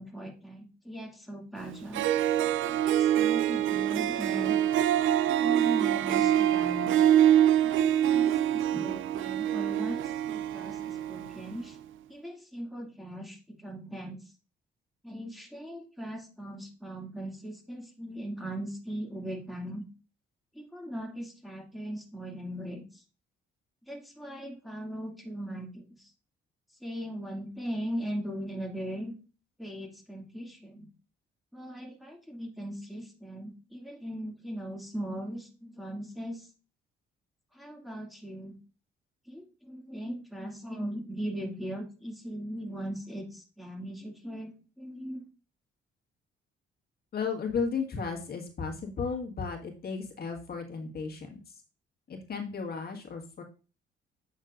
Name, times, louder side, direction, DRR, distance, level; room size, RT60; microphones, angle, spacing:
voice 1, 0.0-2.1 2.6-4.6 5.3-7.1 7.6-11.8 12.1-14.3 15.0-19.8 20.5-23.0 23.9-26.1 26.8-29.1 29.6-30.9 31.5-36.5 37.5-38.6 39.3-45.3, equal, ahead, 0 dB, 2.4 m, -39 dB
Harp, 1.6-1.7 1.9-11.5, right 11 dB, 80° right, 0.5 m, -25 dB
voice 2, 47.1-51.5 52.1-53.4, left 5 dB, 50° left, 2 dB, 1.7 m, -34 dB
8.4 x 6.5 x 2.6 m, 0.34 s
cardioid pair, 90°, 20 cm